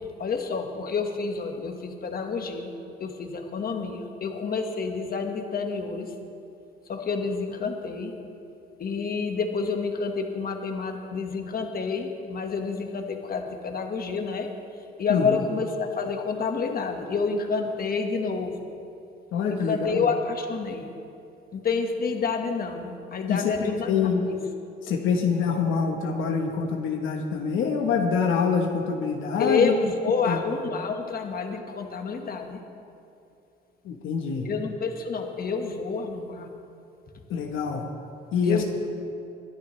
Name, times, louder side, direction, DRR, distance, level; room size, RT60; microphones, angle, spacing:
voice 1, 0.2-2.7 3.0-6.1 6.9-8.1 8.8-14.5 15.0-18.6 19.5-20.9 21.5-23.9 24.3-24.4 29.4-32.6 34.4-36.5 38.4-38.6, left 4 dB, 50° left, 4 dB, 1.5 m, -28 dB
voice 2, 19.3-20.0 23.3-24.3 24.8-29.7 30.2-30.4 33.8-34.5 37.3-37.9 38.3-38.6, left 6 dB, 80° left, 2 dB, 1.1 m, -25 dB
22.0 x 10.5 x 3.2 m, 2.6 s
cardioid pair, 90°, 20 cm